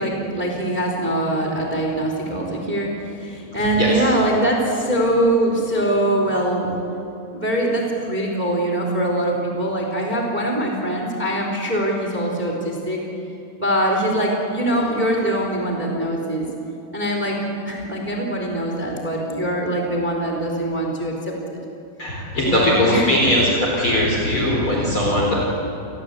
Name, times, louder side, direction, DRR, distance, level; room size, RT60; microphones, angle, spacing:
voice 1, 0.0-6.8 7.3-13.0 13.6-16.4 16.9-17.4 17.7-21.6 22.4-23.1, right 1 dB, 10° right, 1 dB, 3.6 m, -23 dB
voice 2, 22.0-23.4 23.8-25.3, left 1 dB, 35° left, -3 dB, 4.7 m, -19 dB
29.0 x 22.0 x 8.3 m, 2.7 s
omnidirectional pair, 4.2 m